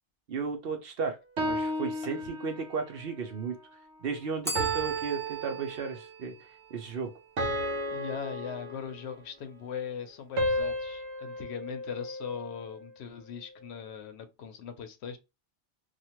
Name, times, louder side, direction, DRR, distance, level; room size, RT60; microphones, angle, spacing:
voice 1, 0.3-3.6 4.0-6.3 6.7-7.1, right 5 dB, 60° right, 0.8 m, -34 dB
sound 1, 1.4-2.9 4.6-6.2 7.4-9.3 10.4-12.7, equal, 85° right, 1.1 m, -33 dB
Bell, 4.4-7.3, right 2 dB, 5° left, 0.3 m, -40 dB
voice 2, 7.9-15.2, left 7 dB, 75° left, 0.8 m, -40 dB
2.9 x 2.4 x 2.8 m
omnidirectional pair, 1.2 m